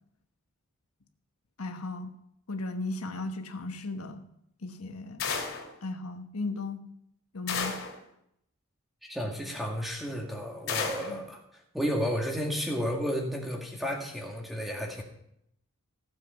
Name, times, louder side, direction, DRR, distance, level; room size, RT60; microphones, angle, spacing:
voice 1, 1.6-2.1 2.5-4.2 4.6-5.2 5.8-6.8 7.3-7.8 11.1-11.2, left 2 dB, 85° left, 6 dB, 1.2 m, -36 dB
sound 1, 5.2-5.7 7.5-8.0 10.7-11.2, left 5 dB, 70° left, 2.7 m, -32 dB
voice 2, 9.0-15.0, equal, ahead, 0 dB, 2.0 m, -32 dB
15.5 x 7.5 x 5.6 m, 0.74 s
head